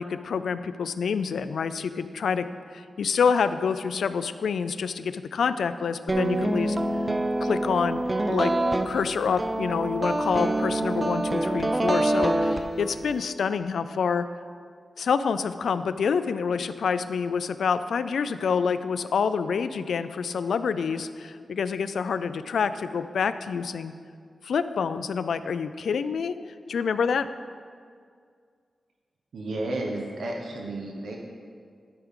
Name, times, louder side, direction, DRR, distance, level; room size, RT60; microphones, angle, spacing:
voice 1, 0.0-2.5 2.7-6.8 7.4-8.5 8.9-14.3 15.0-23.9 24.4-26.4 26.7-27.3, left 6 dB, 85° left, 12 dB, 0.3 m, -27 dB
sound 1, 6.1-13.2, right 1 dB, 20° right, 0.3 m, -26 dB
voice 2, 29.3-31.2, right 2 dB, 80° right, 0 dB, 0.9 m, -32 dB
12.0 x 6.0 x 3.7 m, 2.1 s
wide cardioid pair, 140°, 0 cm